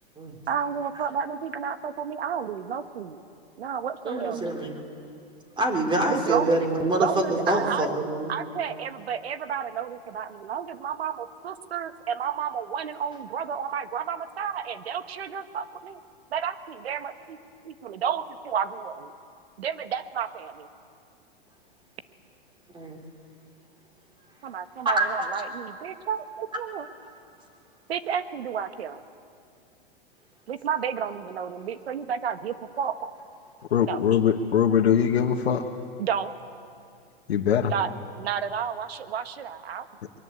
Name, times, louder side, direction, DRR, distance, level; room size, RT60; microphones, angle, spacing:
voice 1, 0.5-3.2 3.6-4.5 6.1-6.6 7.0-7.9 8.3-16.0 16.3-17.4 17.6-19.1 19.6-20.7 24.4-26.9 27.9-29.0 30.5-33.1 33.8-34.0 36.0-36.3 37.6-39.9, right 8 dB, 80° right, 10 dB, 1.5 m, -31 dB
voice 2, 4.0-4.8 5.6-8.3 22.7-23.0 24.9-25.3, right 2 dB, 15° right, 4 dB, 3.5 m, -25 dB
voice 3, 33.7-35.6 37.3-37.7, left 8 dB, 85° left, 2 dB, 1.5 m, -22 dB
23.0 x 22.0 x 8.2 m, 2.5 s
hypercardioid pair, 120°, 31 cm